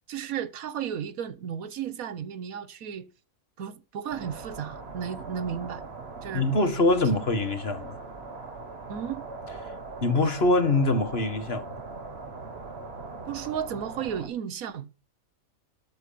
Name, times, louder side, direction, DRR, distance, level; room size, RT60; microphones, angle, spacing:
voice 1, 0.1-3.1 3.6-5.8 6.2-6.5 8.9-9.2 13.3-15.0, right 8 dB, 75° right, 1.5 m, -34 dB
sound 1, 4.1-14.3, right 3 dB, 45° right, 1.8 m, -41 dB
voice 2, 6.3-8.0 10.0-11.8, left 2 dB, 45° left, 2.0 m, -24 dB
13.0 x 4.6 x 8.6 m
omnidirectional pair, 1.5 m